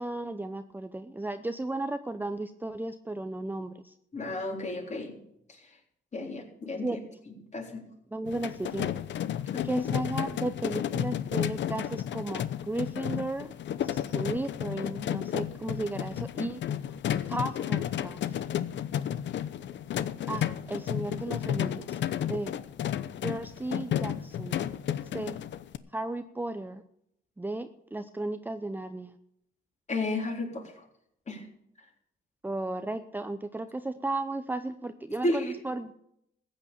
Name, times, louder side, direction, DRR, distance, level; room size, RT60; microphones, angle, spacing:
voice 1, 0.0-3.9 6.8-7.0 8.1-8.9 9.6-13.5 13.8-16.6 17.3-18.2 20.3-22.6 23.2-24.6 25.1-25.4 25.9-26.8 27.4-29.1 32.4-35.9, right 2 dB, 10° right, 9 dB, 0.7 m, -35 dB
voice 2, 4.1-5.2 5.5-5.6 6.1-7.0 7.5-7.8 9.5-9.8 29.9-30.7 31.3-31.4 35.2-35.5, left 2 dB, 35° left, 1 dB, 3.9 m, -32 dB
sound 1, 8.3-25.8, left 10 dB, 65° left, 0.8 m, -32 dB
15.0 x 8.8 x 6.9 m, 0.75 s
cardioid pair, 90°, 20 cm